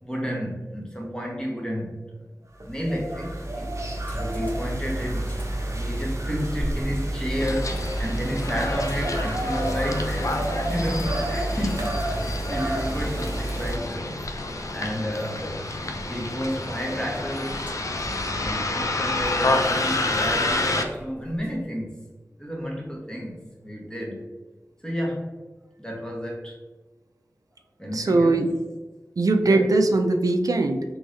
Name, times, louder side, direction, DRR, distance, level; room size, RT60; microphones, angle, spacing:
voice 1, 0.0-1.9 2.6-5.3 5.7-10.4 10.7-14.2 14.7-15.5 15.8-17.6 18.3-21.9 22.4-24.2 24.8-25.4 25.8-26.6 27.8-28.5 29.4-29.7, equal, 10° left, -1 dB, 1.1 m, -31 dB
sound 1, 2.6-13.8, right 1 dB, 55° right, 0.7 m, -29 dB
sound 2, 3.8-21.7, equal, 30° left, 1.2 m, -44 dB
Bus, 7.4-20.8, left 2 dB, 60° left, 0.4 m, -29 dB
voice 2, 27.9-28.5 29.2-30.8, right 2 dB, 80° right, 5 dB, 0.3 m, -20 dB
3.6 x 3.0 x 3.1 m, 1.2 s
wide cardioid pair, 40°, 6 cm